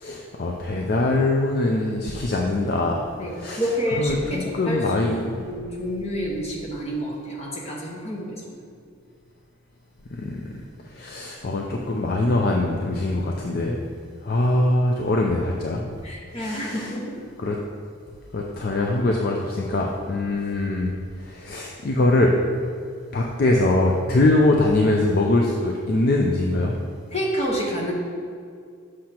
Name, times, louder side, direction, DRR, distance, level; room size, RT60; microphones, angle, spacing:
voice 1, 0.0-3.0 3.4-3.6 4.0-5.4 10.1-10.5 11.0-13.8 14.2-15.8 16.4-16.9 17.4-17.6 18.3-20.9 21.2-22.4 23.1-26.8, left 2 dB, 45° left, 0 dB, 0.5 m, -22 dB
voice 2, 3.2-8.6 16.0-17.2 27.1-27.9, equal, 30° left, -3 dB, 1.1 m, -29 dB
7.6 x 6.3 x 2.9 m, 2.3 s
head